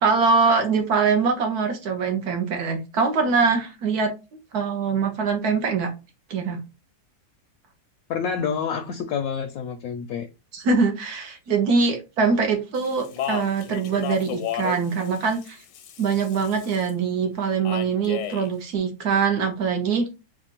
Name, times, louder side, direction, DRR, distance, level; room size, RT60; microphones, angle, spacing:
voice 1, 0.0-4.1 4.5-5.9 6.3-6.6 10.5-15.6 16.0-20.1, right 5 dB, 70° right, 1.4 m, -23 dB
voice 2, 8.1-10.3, left 6 dB, 70° left, 0.9 m, -28 dB
Speech, 12.7-16.9 17.6-18.5, left 11 dB, 85° left, 1.3 m, -34 dB
4.2 x 2.5 x 4.4 m
omnidirectional pair, 1.8 m